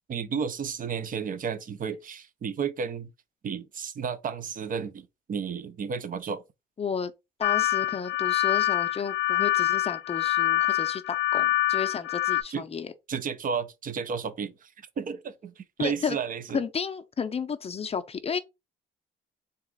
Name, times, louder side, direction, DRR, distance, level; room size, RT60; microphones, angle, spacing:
voice 1, 0.1-3.1 3.4-6.4 12.5-12.6 13.1-14.7 15.0-16.6, right 6 dB, 45° right, 0.6 m, -32 dB
voice 2, 6.8-7.1 7.4-12.9 15.8-16.2 16.5-18.4, left 6 dB, 30° left, 0.5 m, -32 dB
sound 1, 7.4-12.4, left 15 dB, 80° left, 0.5 m, -25 dB
4.0 x 2.4 x 3.6 m
cardioid pair, 90°, 20 cm